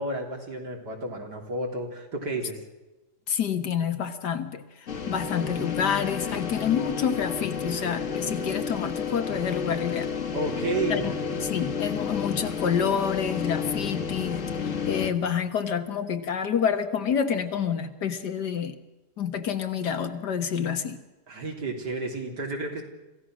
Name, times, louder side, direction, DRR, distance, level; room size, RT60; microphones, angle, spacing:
voice 1, 0.0-2.6 10.3-11.1 21.3-22.8, right 2 dB, 90° right, 1 dB, 4.0 m, -31 dB
voice 2, 3.3-4.6 5.1-10.1 10.9-11.1 11.4-18.8 19.2-21.0, left 7 dB, 80° left, 8 dB, 2.0 m, -28 dB
sound 1, 4.9-15.1, left 6 dB, 50° left, 1.6 m, -31 dB
26.0 x 16.0 x 6.3 m, 1.1 s
omnidirectional pair, 1.7 m